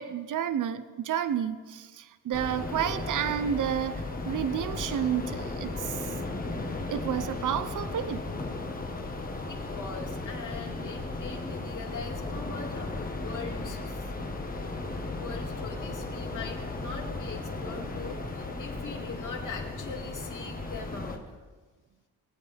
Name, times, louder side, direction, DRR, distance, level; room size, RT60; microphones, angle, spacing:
voice 1, 0.0-6.1 6.9-8.2, right 9 dB, 50° right, 12 dB, 0.8 m, -30 dB
sound 1, 2.3-21.2, left 2 dB, 20° left, 1.6 m, -35 dB
voice 2, 9.4-14.4 15.1-21.4, left 4 dB, 50° left, 1 dB, 2.6 m, -42 dB
23.0 x 9.4 x 3.5 m, 1.3 s
cardioid pair, 95°, 40 cm